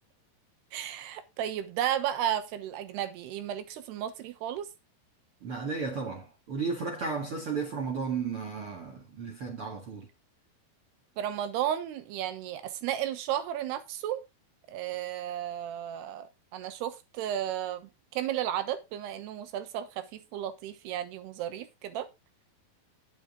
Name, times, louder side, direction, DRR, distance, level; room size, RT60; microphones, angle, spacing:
voice 1, 0.7-4.7 11.2-14.2 14.7-22.1, right 11 dB, 90° right, 3.2 m, -33 dB
voice 2, 5.4-10.1, right 5 dB, 45° right, 1.9 m, -34 dB
10.5 x 7.9 x 3.7 m
omnidirectional pair, 4.6 m